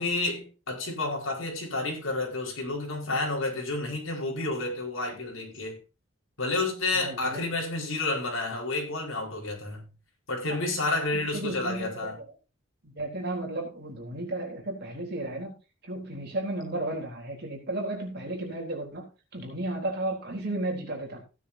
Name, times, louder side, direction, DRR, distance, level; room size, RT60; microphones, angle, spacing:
voice 1, 0.0-5.8 6.4-9.9 10.3-12.2, left 2 dB, 70° left, 5.0 m, -30 dB
voice 2, 6.9-7.4 10.5-10.6 11.1-12.1 12.8-15.5 15.8-19.0 19.3-21.2, right 1 dB, 50° right, 3.7 m, -34 dB
16.0 x 9.8 x 2.8 m
head